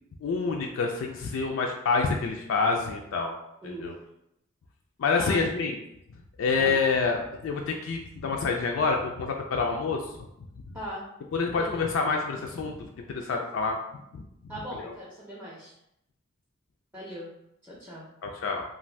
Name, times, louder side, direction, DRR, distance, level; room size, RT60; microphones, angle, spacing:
voice 1, 0.2-3.3 3.6-4.0 5.0-5.8 6.4-10.1 11.3-13.8 14.8-14.9 18.2-18.6, left 4 dB, 70° left, 1 dB, 0.3 m, -27 dB
voice 2, 3.6-3.9 5.1-5.7 6.6-6.8 10.7-11.0 11.5-11.8 14.5-15.7 16.9-17.3 17.6-18.1, equal, 10° right, -6 dB, 0.5 m, -39 dB
2.5 x 2.5 x 3.2 m, 0.81 s
head